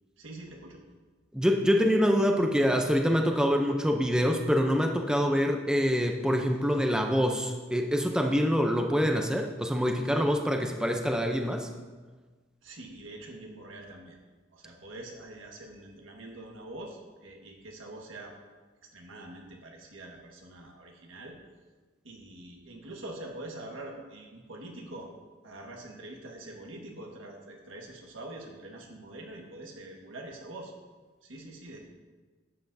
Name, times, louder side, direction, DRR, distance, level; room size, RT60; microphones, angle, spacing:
voice 1, 0.2-0.8 12.6-14.2 14.5-18.3 18.9-21.4 22.0-25.1 25.4-30.7 31.2-31.8, right 1 dB, 90° right, 0 dB, 1.5 m, -44 dB
voice 2, 1.3-11.7, equal, 5° right, 3 dB, 0.5 m, -25 dB
11.5 x 8.0 x 2.6 m, 1.3 s
head